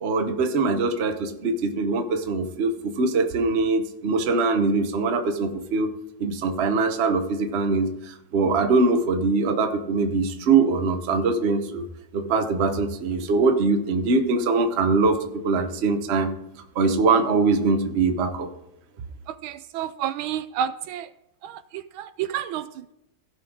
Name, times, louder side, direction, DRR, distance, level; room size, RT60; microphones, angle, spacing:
voice 1, 0.0-5.9 6.2-11.8 12.1-16.3 16.7-18.5, right 3 dB, 45° right, 6 dB, 0.9 m, -22 dB
voice 2, 19.3-21.1 21.4-22.9, right 9 dB, 80° right, 12 dB, 1.3 m, -30 dB
16.5 x 5.6 x 3.7 m, 0.86 s
omnidirectional pair, 2.3 m